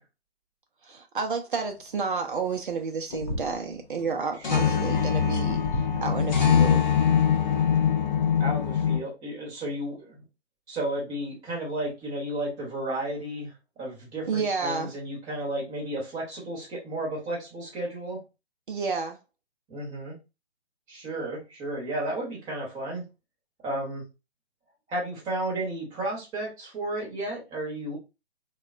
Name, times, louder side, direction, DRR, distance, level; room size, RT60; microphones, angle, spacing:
voice 1, 0.8-6.8 14.3-14.9 18.7-19.2, right 5 dB, 55° right, 0.5 m, -31 dB
sound 1, 3.1-3.6 4.0-4.1 4.4-9.0, left 7 dB, 45° left, 0.7 m, -23 dB
voice 2, 4.5-4.8 8.4-10.2 10.7-13.5 13.8-18.2 19.7-20.2 20.9-23.1 23.6-24.0 24.9-28.0, right 1 dB, 10° right, 0.8 m, -33 dB
3.4 x 2.2 x 2.4 m
figure-of-eight pair, 135°, 32 cm